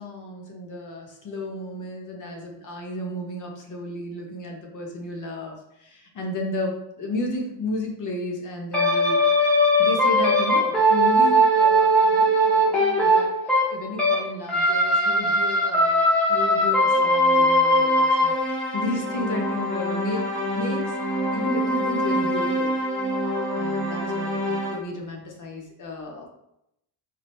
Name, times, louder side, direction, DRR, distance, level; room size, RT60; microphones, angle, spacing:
voice 1, 0.0-9.2 9.5-18.3 18.7-21.0 21.3-22.8 23.6-26.3, left 2 dB, 40° left, 0 dB, 0.8 m, -33 dB
sound 1, 8.7-14.2 14.5-24.7, equal, ahead, 0.7 m, -21 dB
4.4 x 2.6 x 3.0 m, 0.81 s
cardioid pair, 160°, 47 cm